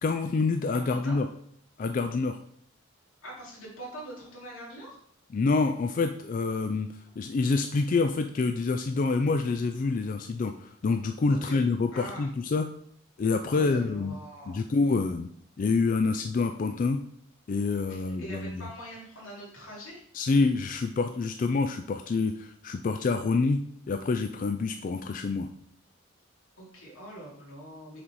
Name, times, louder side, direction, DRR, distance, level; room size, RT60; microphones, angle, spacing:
voice 1, 0.0-1.2 1.8-2.4 5.3-6.9 7.2-12.7 13.2-14.1 14.5-15.3 15.6-17.0 17.5-18.7 20.1-23.6 23.9-25.5, left 4 dB, 40° left, 7 dB, 0.3 m, -27 dB
voice 2, 3.2-5.0 11.4-11.6 11.9-12.3 13.2-14.6 17.9-20.0 26.6-28.0, right 1 dB, 85° left, -4 dB, 2.7 m, -43 dB
6.0 x 4.1 x 4.7 m, 0.65 s
head